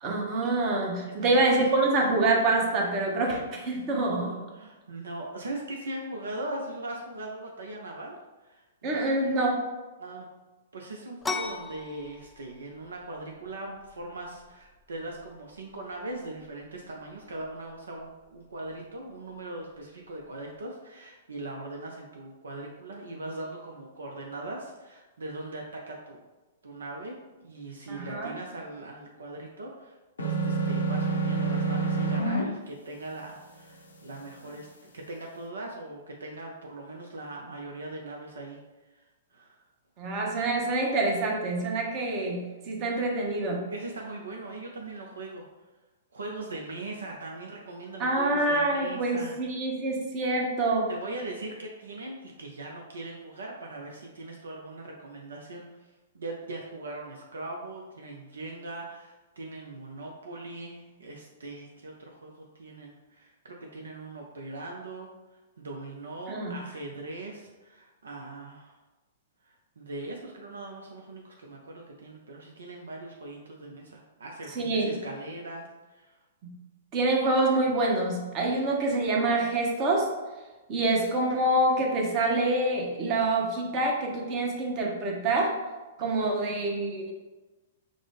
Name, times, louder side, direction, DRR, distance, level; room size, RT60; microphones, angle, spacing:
voice 1, 0.0-4.4 8.8-9.7 27.9-28.3 40.0-43.6 48.0-50.9 66.3-66.5 74.6-74.9 76.4-76.5 76.9-80.1 80.7-85.6 86.0-87.1, right 2 dB, 35° right, 0 dB, 0.9 m, -26 dB
voice 2, 0.7-1.6 4.5-9.3 10.0-10.3 10.7-26.2 26.6-27.1 27.4-38.6 38.9-39.0 39.3-39.6 43.7-45.5 46.1-49.4 50.9-55.6 56.1-68.8 69.4-76.2 86.0-86.3, right 2 dB, 70° right, 0 dB, 0.5 m, -40 dB
sound 1, 11.2-20.6, left 3 dB, 10° left, 0.3 m, -43 dB
sound 2, 30.2-32.4, right 3 dB, 75° left, 0.6 m, -27 dB
4.8 x 2.1 x 3.6 m, 1.2 s
figure-of-eight pair, 110°, 0 cm